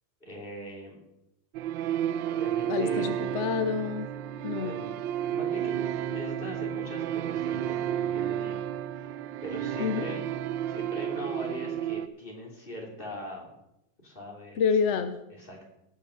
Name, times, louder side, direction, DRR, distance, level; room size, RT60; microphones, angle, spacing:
voice 1, 0.2-1.0 2.3-3.0 4.6-8.6 8.9-9.2 9.4-10.2 10.7-13.5 14.0-14.6 15.4-15.7, equal, 30° left, -1 dB, 3.1 m, -41 dB
sound 1, 1.5-12.1, right 10 dB, 85° right, 1.3 m, -31 dB
voice 2, 2.7-4.1 4.4-4.8 9.8-10.1 14.6-15.2, left 6 dB, 65° left, 9 dB, 0.7 m, -28 dB
17.5 x 6.0 x 6.3 m, 0.85 s
omnidirectional pair, 2.0 m